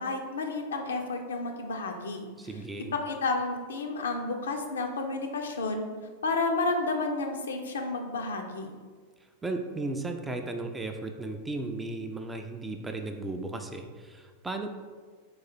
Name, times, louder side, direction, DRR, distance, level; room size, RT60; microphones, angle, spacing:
voice 1, 0.0-2.3 2.8-5.8 6.2-8.7, left 3 dB, 65° left, 4 dB, 0.5 m, -31 dB
voice 2, 2.4-2.9 9.4-14.7, right 2 dB, 10° right, 5 dB, 0.3 m, -35 dB
4.0 x 2.4 x 4.1 m, 1.5 s
figure-of-eight pair, 90°, 0 cm